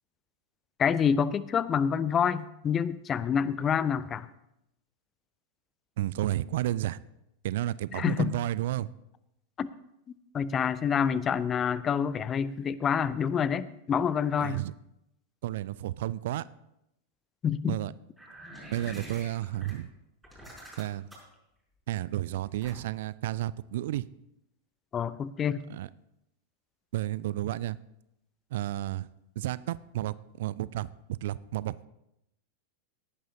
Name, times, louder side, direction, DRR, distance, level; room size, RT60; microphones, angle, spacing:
voice 1, 0.8-4.3 7.9-8.3 9.6-9.7 10.3-14.6 17.4-17.8 24.9-25.6, left 7 dB, 25° left, 18 dB, 0.4 m, -27 dB
voice 2, 6.0-7.0 7.4-8.9 14.4-14.7 15.4-16.5 17.7-17.9 18.7-19.9 20.8-21.1 21.9-24.0 25.7-25.9 26.9-27.8 28.5-29.1 29.4-30.9 31.2-31.9, right 14 dB, 55° right, 20 dB, 0.3 m, -32 dB
sound 1, 18.2-19.7 20.2-21.3 22.6-23.0, right 1 dB, ahead, 5.6 m, -46 dB
18.0 x 11.0 x 2.7 m, 0.84 s
figure-of-eight pair, 90°, 0 cm